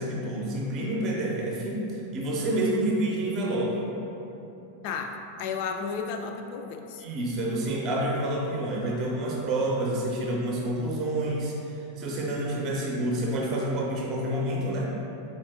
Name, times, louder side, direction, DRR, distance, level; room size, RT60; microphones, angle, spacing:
voice 1, 0.0-3.9 7.0-14.8, right 1 dB, 35° right, -2 dB, 0.6 m, -28 dB
voice 2, 4.8-7.0, left 5 dB, 45° left, 5 dB, 0.3 m, -33 dB
4.7 x 2.5 x 3.6 m, 2.9 s
figure-of-eight pair, 90°, 0 cm